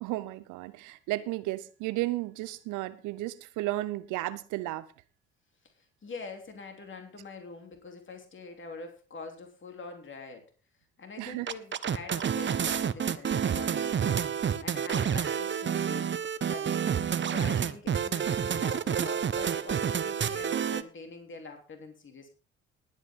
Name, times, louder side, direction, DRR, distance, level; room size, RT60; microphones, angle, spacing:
voice 1, 0.0-4.9 11.2-11.5 13.2-13.5, right 18 dB, 65° right, 0.8 m, -34 dB
voice 2, 6.0-10.4 11.0-16.1 16.4-16.9 17.2-22.3, left 4 dB, 35° left, 3.3 m, -44 dB
sound 1, 11.5-20.8, right 8 dB, 35° right, 1.0 m, -29 dB
19.5 x 8.6 x 3.7 m
hypercardioid pair, 50°, 32 cm